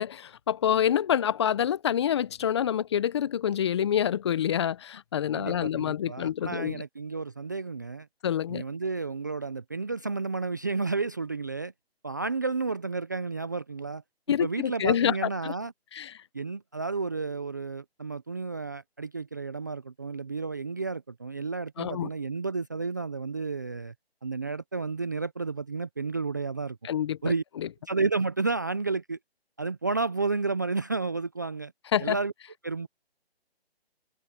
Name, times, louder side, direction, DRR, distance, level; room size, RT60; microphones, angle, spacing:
voice 1, 0.0-6.8 8.2-8.6 14.3-15.2 15.4-15.5 15.9-16.1 21.8-22.1 26.8-27.3 31.9-32.2, left 9 dB, 25° left, 1.1 m, -27 dB
voice 2, 5.3-8.1 8.5-11.7 12.0-14.0 14.4-15.7 16.3-23.9 24.2-26.8 27.2-27.4 27.9-29.2 29.6-31.7 32.0-32.3 32.6-32.9, right 4 dB, 20° right, 0.5 m, -31 dB
hypercardioid pair, 160°, 32 cm